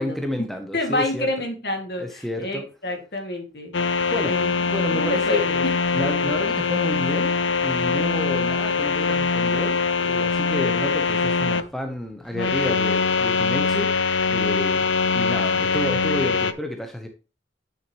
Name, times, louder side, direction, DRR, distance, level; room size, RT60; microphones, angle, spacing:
voice 1, 0.0-1.3 2.0-2.7 4.1-5.6 5.9-7.3 7.6-14.0 14.3-17.1, left 1 dB, ahead, 0.9 m, -30 dB
voice 2, 0.7-3.7 4.3-4.5 4.9-5.7 15.5-15.6, left 1 dB, 55° left, 2.2 m, -28 dB
sound 1, 3.7-11.6 12.3-16.5, left 5 dB, 90° left, 0.6 m, -23 dB
9.1 x 6.4 x 3.1 m
head